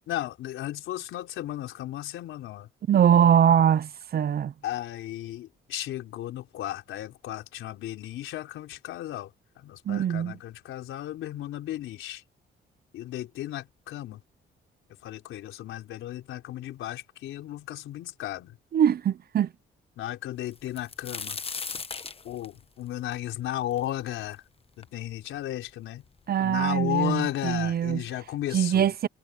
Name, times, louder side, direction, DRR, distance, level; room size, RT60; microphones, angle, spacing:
voice 1, 0.0-2.7 4.6-12.2 12.9-14.2 15.0-18.6 20.0-21.4 22.2-24.4 24.8-26.0 26.4-28.9, left 13 dB, 85° left, 4.3 m, -34 dB
voice 2, 2.9-4.5 9.9-10.4 18.7-19.5 26.3-28.0 28.5-29.1, right 9 dB, 50° right, 0.7 m, -22 dB
sound 1, 20.5-24.3 24.8-24.9 25.7-25.8 26.0-26.7 27.6-27.7 28.1-28.3, left 5 dB, 30° left, 1.2 m, -38 dB
cardioid pair, 90°, 20 cm